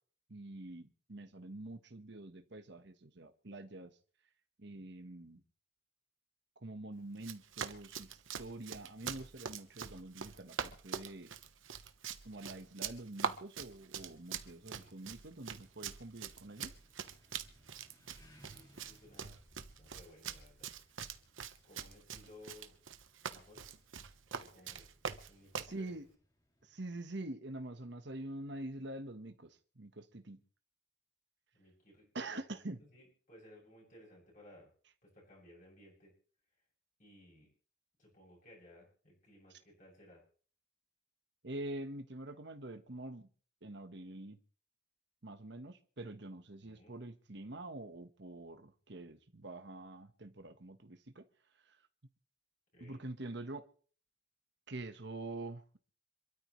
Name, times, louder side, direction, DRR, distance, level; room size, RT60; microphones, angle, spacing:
voice 1, 0.3-3.9 4.6-5.4 6.6-11.3 12.2-16.7 25.6-26.0 26.6-30.4 32.1-32.8 41.4-43.3 43.6-44.4 45.2-51.3 51.7-51.8 52.8-53.7 54.7-55.8, right 2 dB, 60° right, 7 dB, 1.4 m, -46 dB
Run, 7.2-25.8, right 6 dB, 75° right, 1.2 m, -44 dB
sound 1, 13.9-27.0, equal, 20° left, 2.6 m, -68 dB
voice 2, 18.4-19.4 19.8-20.7 21.6-22.7 23.2-24.9 25.3-26.0 31.5-34.7 35.0-36.1 37.0-37.5 38.0-40.2 46.6-47.0 52.7-53.0, left 1 dB, 40° left, -3 dB, 7.6 m, -59 dB
27.0 x 13.0 x 3.2 m, 0.43 s
head